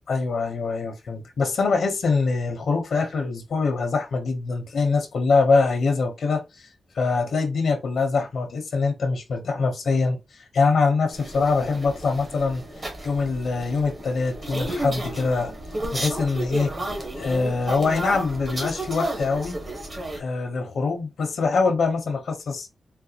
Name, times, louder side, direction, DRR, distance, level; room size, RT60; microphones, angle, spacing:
voice 1, 0.1-6.7 6.9-12.6 13.0-15.5 15.9-16.7 17.1-19.6 20.2-22.7, left 4 dB, 70° left, 0.8 m, -24 dB
sound 1, 11.1-20.2, right 1 dB, 35° right, 1.0 m, -32 dB
3.9 x 2.2 x 2.8 m
wide cardioid pair, 145°, 0 cm